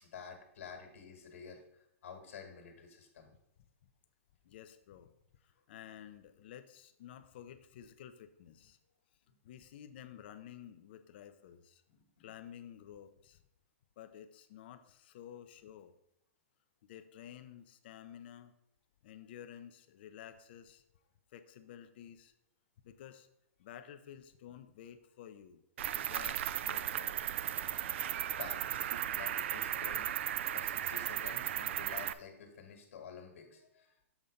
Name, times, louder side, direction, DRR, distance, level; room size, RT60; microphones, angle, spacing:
voice 1, 0.0-1.6 2.0-3.3 11.9-12.2 28.3-28.9 29.1-30.1 30.5-34.0, left 6 dB, 65° left, 4 dB, 1.7 m, -50 dB
voice 2, 4.4-5.1 5.4-8.8 9.4-11.8 12.2-13.4 14.0-15.9 16.8-18.5 19.0-20.8 21.3-22.3 22.8-23.3 23.6-25.6 25.9-27.1, left 10 dB, 45° left, 10 dB, 0.6 m, -52 dB
Cricket, 25.8-32.1, right 11 dB, 55° right, 0.4 m, -36 dB
7.2 x 4.0 x 5.2 m, 0.77 s
hypercardioid pair, 155°, 8 cm